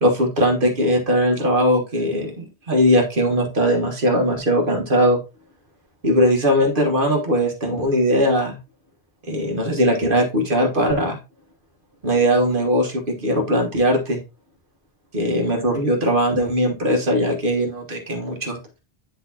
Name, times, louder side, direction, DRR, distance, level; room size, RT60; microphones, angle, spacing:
voice 1, 0.0-5.2 6.0-8.6 9.3-11.2 12.0-14.2 15.1-18.6, equal, 50° right, 1 dB, 1.5 m, -20 dB
9.2 x 4.1 x 2.8 m, 0.28 s
omnidirectional pair, 1.1 m